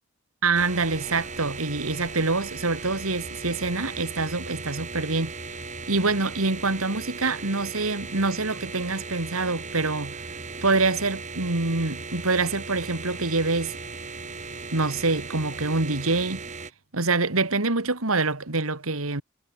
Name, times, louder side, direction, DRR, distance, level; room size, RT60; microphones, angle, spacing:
voice 1, 0.4-5.3 5.9-10.2 10.6-13.7 14.7-16.4 16.9-19.2, right 3 dB, 90° right, 2.6 m, -25 dB
sound 1, 0.5-16.7, right 4 dB, 35° right, 7.0 m, -37 dB
head